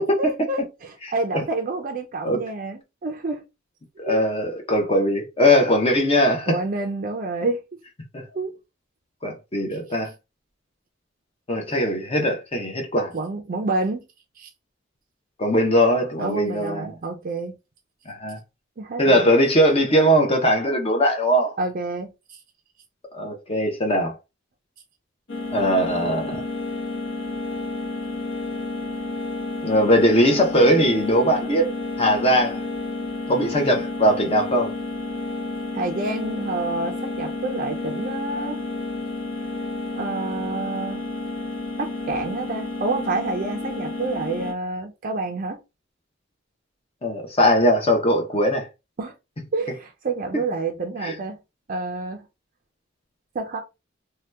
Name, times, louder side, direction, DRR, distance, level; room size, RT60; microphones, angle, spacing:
voice 1, 0.2-3.4 4.0-4.2 6.5-7.6 8.3-8.5 13.1-14.0 14.4-14.5 16.2-17.5 18.8-19.3 21.6-22.1 35.7-38.6 39.9-41.1 41.8-45.6 49.0-49.1 49.5-51.4 51.7-52.2 53.3-53.6, right 3 dB, 45° right, 0.4 m, -28 dB
voice 2, 4.0-6.6 8.1-8.2 9.2-10.1 11.5-13.1 15.4-16.9 18.1-18.4 19.0-21.5 23.1-24.2 25.5-26.4 29.6-31.7 32.0-32.7 33.3-34.7 47.0-48.7 51.0-51.1, equal, 30° left, 0.7 m, -20 dB
sound 1, 25.3-44.5, left 2 dB, 60° left, 0.9 m, -31 dB
2.8 x 2.2 x 3.3 m
head